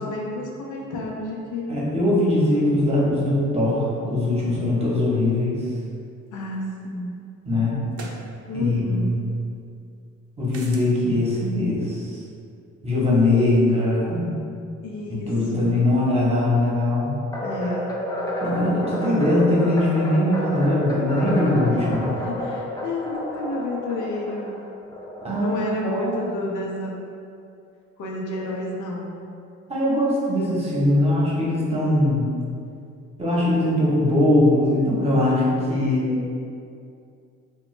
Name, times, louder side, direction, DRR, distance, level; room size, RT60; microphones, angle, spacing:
voice 1, 0.0-1.7 6.3-7.1 8.5-9.2 14.8-15.7 17.4-17.9 21.9-24.6 25.4-27.0 28.0-29.2 35.6-36.4, left 1 dB, 80° left, -2 dB, 0.6 m, -31 dB
voice 2, 1.7-5.5 7.4-7.8 8.5-9.2 10.4-12.2 12.8-14.3 15.3-17.2 18.4-22.0 25.2-26.2 29.7-32.3 33.2-36.0, left 1 dB, 20° right, -6 dB, 0.9 m, -21 dB
sound 1, 6.5-6.6 7.9-8.3 10.5-10.9, right 3 dB, 50° right, 0.5 m, -38 dB
sound 2, 17.3-25.6, left 1 dB, 15° left, 0.3 m, -30 dB
2.9 x 2.2 x 3.1 m, 2.4 s
cardioid pair, 90°, 30 cm